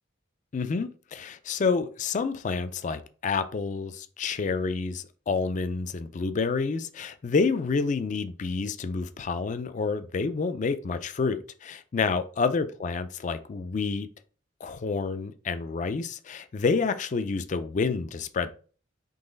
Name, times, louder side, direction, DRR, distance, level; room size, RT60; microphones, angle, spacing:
voice 1, 0.5-14.1 14.6-18.5, left 4 dB, 35° left, 0.3 m, -29 dB
3.9 x 3.1 x 3.8 m
head